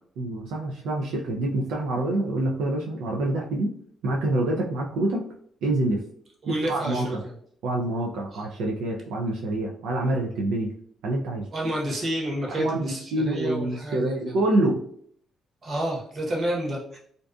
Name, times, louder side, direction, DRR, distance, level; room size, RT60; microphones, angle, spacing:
voice 1, 0.2-3.7 4.0-5.2 5.6-6.0 6.5-7.2 7.6-10.7 11.0-11.5 12.5-14.8, right 2 dB, 90° right, -2 dB, 0.4 m, -26 dB
voice 2, 6.4-7.3 8.3-8.5 11.5-14.3 15.6-17.0, right 1 dB, 40° right, -3 dB, 1.0 m, -29 dB
2.5 x 2.2 x 2.4 m, 0.62 s
cardioid pair, 90°, 0 cm